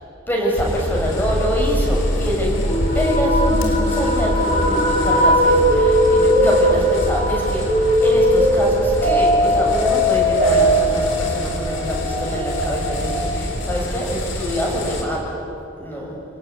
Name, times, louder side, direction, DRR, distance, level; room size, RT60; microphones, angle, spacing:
voice 1, 0.3-7.6 8.0-15.4 15.8-16.2, equal, 10° left, -2 dB, 6.9 m, -25 dB
sound 1, 0.5-15.0, equal, 70° left, 4.0 m, -26 dB
sound 2, 2.7-13.6, equal, 40° left, 5.7 m, -19 dB
30.0 x 18.5 x 9.6 m, 2.8 s
head